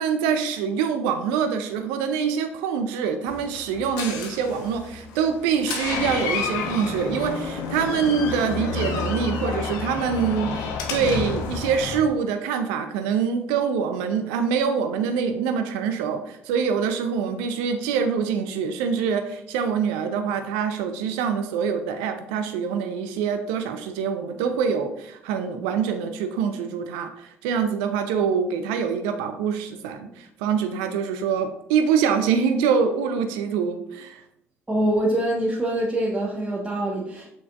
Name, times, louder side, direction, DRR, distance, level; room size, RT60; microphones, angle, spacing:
voice 1, 0.0-34.2, right 6 dB, 70° right, 7 dB, 0.5 m, -25 dB
Door, 3.3-12.0, left 5 dB, 65° left, 1.0 m, -30 dB
voice 2, 34.7-37.3, right 1 dB, 15° right, -5 dB, 1.3 m, -24 dB
7.2 x 5.7 x 2.4 m, 0.80 s
hypercardioid pair, 50°, 7 cm